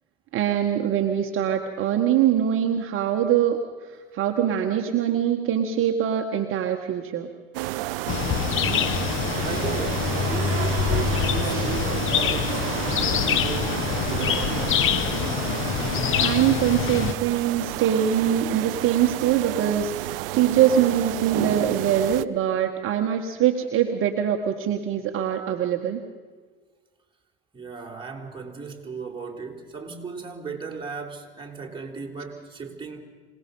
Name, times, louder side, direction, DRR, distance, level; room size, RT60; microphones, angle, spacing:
voice 1, 0.3-3.6 3.9-7.3 11.5-11.7 16.2-26.0, right 10 dB, 45° right, 1.6 m, -23 dB
sound 1, 7.5-22.2, right 17 dB, 70° right, 0.7 m, -30 dB
sound 2, 8.1-17.1, left 9 dB, 45° left, 1.1 m, -25 dB
voice 2, 9.4-14.6 27.5-33.0, right 5 dB, 15° right, 3.9 m, -36 dB
26.5 x 18.5 x 5.5 m
hypercardioid pair, 75°, 29 cm